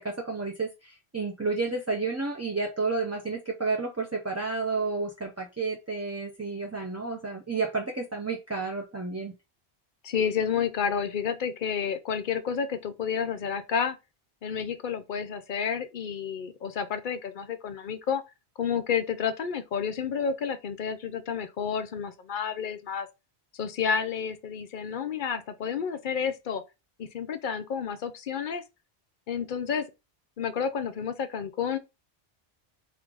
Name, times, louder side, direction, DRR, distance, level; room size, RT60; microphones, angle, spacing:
voice 1, 0.0-9.3, right 3 dB, 20° right, 0.4 m, -31 dB
voice 2, 10.0-14.0 14.4-18.2 18.6-23.1 23.6-26.6 27.0-28.6 29.3-29.9 30.4-31.8, left 7 dB, 60° left, 0.6 m, -30 dB
3.7 x 2.5 x 4.6 m
omnidirectional pair, 1.1 m